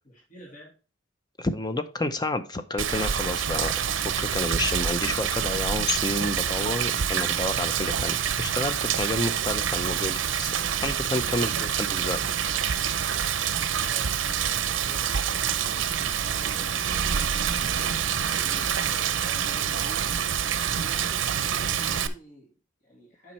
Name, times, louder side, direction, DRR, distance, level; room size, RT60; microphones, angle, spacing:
voice 1, 0.0-0.8 13.8-20.1 20.6-23.3, right 1 dB, 45° left, 1.9 m, -49 dB
voice 2, 1.4-10.6 10.8-12.3 12.6-12.8, left 2 dB, 20° left, 0.6 m, -30 dB
Rain, 2.8-22.1, right 8 dB, 80° right, 0.6 m, -27 dB
7.6 x 5.1 x 4.3 m
head